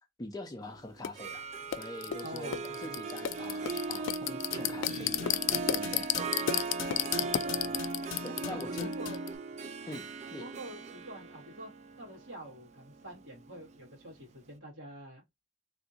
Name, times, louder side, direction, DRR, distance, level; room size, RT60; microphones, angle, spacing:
voice 1, 0.2-6.4 8.2-8.9 9.9-10.4, left 2 dB, 20° left, 0.5 m, -44 dB
sound 1, 1.0-1.1 1.7-9.3, left 11 dB, 85° left, 0.3 m, -33 dB
Harp, 1.0-13.9, right 4 dB, 35° right, 0.3 m, -38 dB
voice 2, 2.2-3.0 7.4-7.8 8.2-9.2 10.4-11.7 12.0-15.2, right 1 dB, 90° right, 1.9 m, -46 dB
3.4 x 2.6 x 2.8 m
head